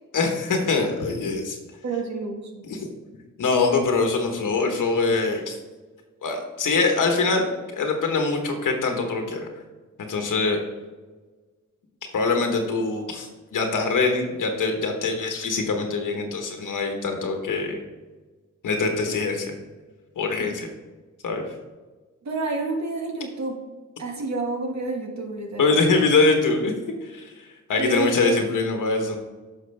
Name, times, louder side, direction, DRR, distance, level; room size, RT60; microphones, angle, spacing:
voice 1, 0.1-1.6 2.7-2.9 3.4-5.5 6.2-7.5 7.7-9.5 10.1-10.6 12.1-17.8 18.6-19.5 20.2-20.7 21.2-21.4 25.6-26.7 27.0-27.3 27.7-29.2, left 3 dB, 85° left, 3 dB, 1.3 m, -23 dB
voice 2, 1.8-2.6 22.2-23.6 24.0-25.8 27.8-28.4, right 3 dB, 60° right, 1 dB, 1.8 m, -29 dB
9.7 x 6.0 x 3.4 m, 1.3 s
cardioid pair, 85°, 31 cm